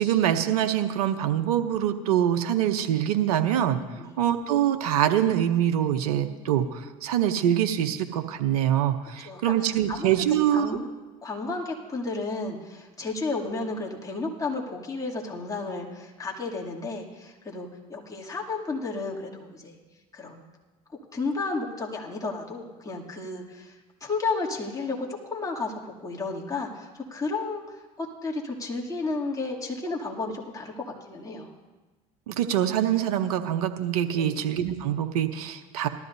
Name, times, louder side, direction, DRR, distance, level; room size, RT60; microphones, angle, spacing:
voice 1, 0.0-3.8 4.2-10.7 32.3-35.9, right 10 dB, 85° right, 8 dB, 0.8 m, -24 dB
voice 2, 9.2-10.1 10.5-10.9 11.2-19.8 20.1-20.4 21.1-23.7 24.0-31.5 34.2-34.5, left 3 dB, 20° left, -3 dB, 2.6 m, -32 dB
18.5 x 13.0 x 2.7 m, 1.2 s
hypercardioid pair, 80°, 19 cm